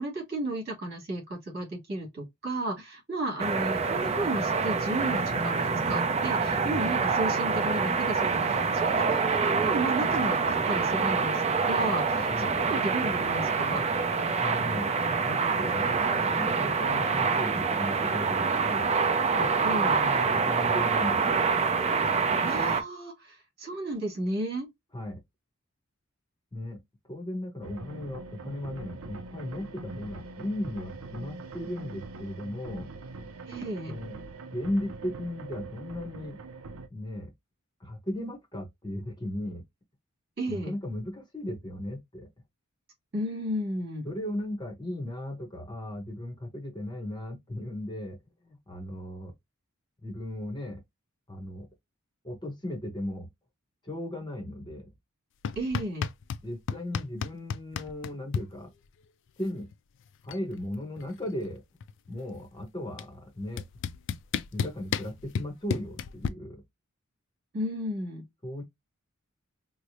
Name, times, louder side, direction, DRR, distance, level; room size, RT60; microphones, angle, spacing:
voice 1, 0.0-13.9 19.6-20.0 22.4-24.7 33.5-34.0 40.4-40.7 43.1-44.0 55.6-56.1 67.5-68.3, right 1 dB, 50° right, 2.2 m, -33 dB
sound 1, 3.4-22.8, right 5 dB, 30° right, 0.5 m, -26 dB
voice 2, 14.4-14.9 15.2-18.9 19.3-21.4 24.9-25.2 26.5-26.8 27.1-32.9 33.9-34.2 34.5-37.3 37.8-39.6 40.5-42.3 44.0-48.2 48.5-49.3 50.0-50.8 51.3-51.7 52.2-53.3 53.8-54.9 56.4-58.7 59.4-59.7 60.2-61.6 62.1-63.6 64.5-66.6 68.4-68.6, left 1 dB, 20° left, 0.8 m, -36 dB
sound 2, 27.6-36.9, right 3 dB, 80° right, 0.5 m, -43 dB
sound 3, 55.4-56.4 56.7-58.4 59.7-59.8 60.1-60.5 60.7-62.1 63.0-63.1 63.6-66.3, left 6 dB, 60° left, 0.4 m, -32 dB
4.6 x 2.0 x 2.6 m
head